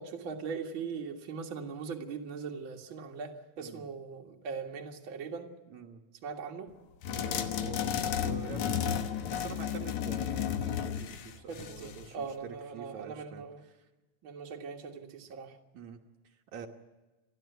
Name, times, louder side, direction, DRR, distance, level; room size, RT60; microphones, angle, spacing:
voice 1, 0.0-5.5 6.2-6.7 11.5-13.6 14.2-15.6, right 5 dB, 45° right, 1 dB, 2.4 m, -40 dB
voice 2, 5.7-6.0 7.1-13.9 15.7-16.7, right 6 dB, 70° right, 2 dB, 2.6 m, -47 dB
sound 1, 7.0-12.1, left 9 dB, 75° left, 2.5 m, -33 dB
30.0 x 12.5 x 8.1 m, 1.2 s
omnidirectional pair, 3.5 m